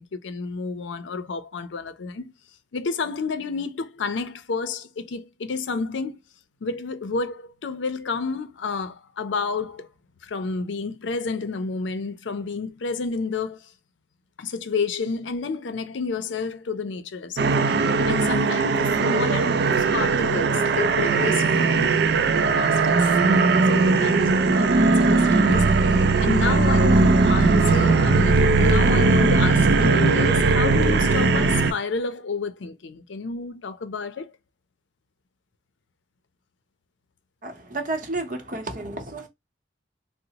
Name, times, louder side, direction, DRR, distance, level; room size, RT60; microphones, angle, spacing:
voice 1, 0.0-2.3 2.7-6.2 6.6-9.9 10.2-13.7 14.4-17.6 18.1-22.0 22.3-23.1 23.7-34.3, left 4 dB, 80° left, 0.5 m, -30 dB
sound 1, 17.4-31.7, right 3 dB, 60° right, 0.4 m, -19 dB
voice 2, 37.4-39.3, right 2 dB, 45° right, 0.8 m, -31 dB
3.9 x 2.0 x 2.8 m
head